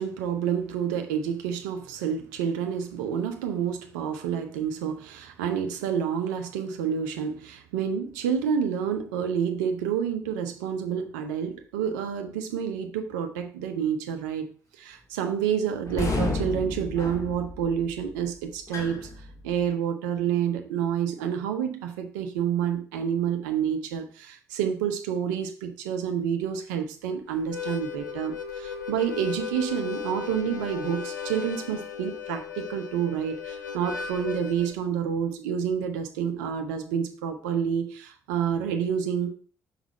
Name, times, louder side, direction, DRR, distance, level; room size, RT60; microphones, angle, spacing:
voice 1, 0.0-14.5 14.8-19.1 19.4-39.3, right 8 dB, 75° right, 7 dB, 0.8 m, -29 dB
sound 1, 15.8-19.7, left 3 dB, 35° left, 2.2 m, -32 dB
Harmonica, 27.4-34.8, left 7 dB, 85° left, 0.5 m, -36 dB
6.1 x 5.0 x 4.1 m, 0.40 s
figure-of-eight pair, 45°, 10 cm